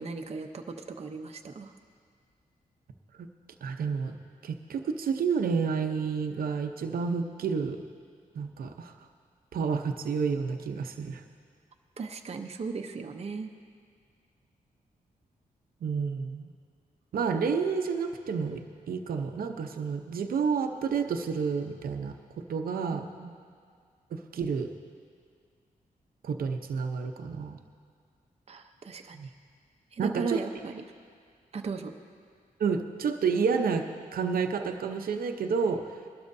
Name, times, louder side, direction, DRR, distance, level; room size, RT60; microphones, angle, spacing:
voice 1, 0.0-1.7 12.0-13.5 22.9-23.3 28.5-29.2 29.9-30.8 31.5-31.9, right 4 dB, 45° right, 3 dB, 0.7 m, -37 dB
voice 2, 3.6-4.2 4.4-7.8 8.3-8.9 9.5-11.2 15.8-16.5 17.1-22.1 22.5-23.0 24.1-24.7 26.2-27.6 29.1-29.3 30.0-30.4 32.6-35.9, right 5 dB, 80° right, 5 dB, 0.7 m, -30 dB
21.0 x 12.5 x 2.7 m, 2.1 s
cardioid pair, 90°, 15 cm